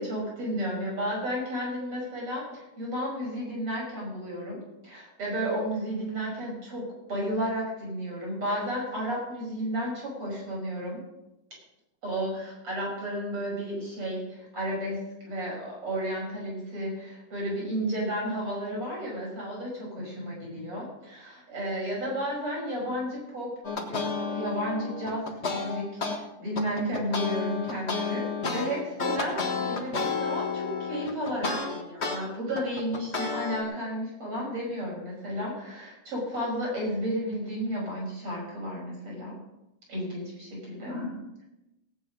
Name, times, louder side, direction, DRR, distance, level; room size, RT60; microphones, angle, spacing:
voice 1, 0.0-11.0 12.0-23.5 23.8-39.3 39.9-41.2, equal, 40° right, -3 dB, 6.7 m, -33 dB
sound 1, 23.6-26.2 26.6-32.2 32.6-33.6, left 4 dB, 55° left, 0.7 m, -31 dB
18.0 x 9.2 x 5.3 m, 0.95 s
omnidirectional pair, 3.9 m